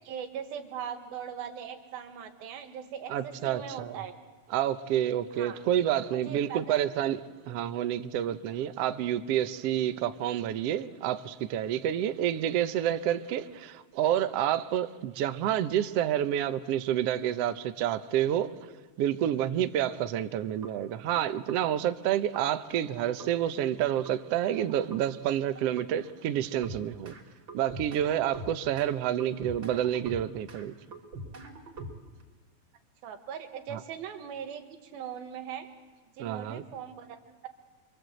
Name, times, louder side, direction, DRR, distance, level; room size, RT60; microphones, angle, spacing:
voice 1, 0.0-4.1 5.4-5.6 6.1-6.8 33.0-35.7 36.1-37.2, right 8 dB, 90° right, 3.6 m, -40 dB
voice 2, 3.1-4.0 4.5-18.5 19.0-27.1 27.5-30.7 33.7-33.8 36.2-36.6, right 11 dB, 75° right, 1.5 m, -29 dB
sound 1, 20.6-20.7 21.1-21.6 22.3-22.4 22.8-23.3 24.1-24.2 24.5-25.0 25.6-25.9 26.6-27.2 27.5-28.9 29.2-30.6 30.9-32.2, right 2 dB, 35° right, 3.8 m, -43 dB
27.0 x 24.5 x 7.9 m
omnidirectional pair, 4.1 m